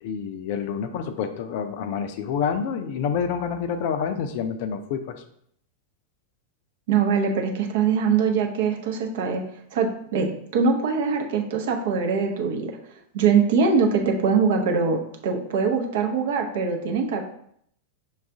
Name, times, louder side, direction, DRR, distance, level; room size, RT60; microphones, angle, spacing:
voice 1, 0.0-5.2, left 7 dB, 50° left, 9 dB, 0.4 m, -28 dB
voice 2, 6.9-9.4 9.7-12.7 13.1-17.2, right 5 dB, 55° right, 2 dB, 0.7 m, -22 dB
6.0 x 2.4 x 3.5 m, 0.68 s
figure-of-eight pair, 90°, 0 cm